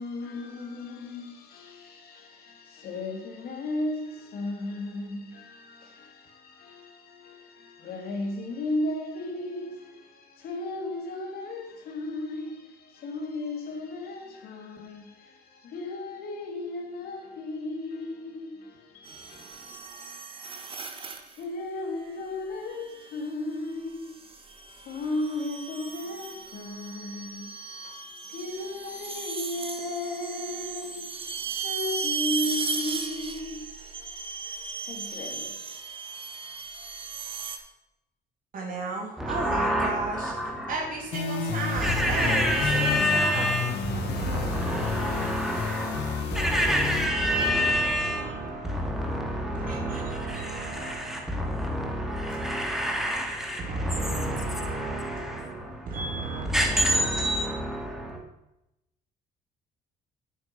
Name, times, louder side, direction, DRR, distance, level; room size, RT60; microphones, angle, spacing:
voice 1, 0.0-20.5 21.3-35.7, left 2 dB, 65° left, 2.6 m, -35 dB
sound 1, 19.0-21.4 22.8-23.2 24.0-37.6, right 5 dB, 30° right, 1.5 m, -36 dB
voice 2, 38.5-40.3 40.7-43.6 43.8-46.2 47.2-52.0 53.6-56.5, right 3 dB, 55° right, 2.9 m, -35 dB
voice 3, 39.2-40.8 41.8-56.2 56.4-58.2, equal, ahead, 2.6 m, -28 dB
sound 2, 41.1-47.1, left 5 dB, 80° left, 1.9 m, -31 dB
9.2 x 8.8 x 5.9 m
cardioid pair, 110°, 17 cm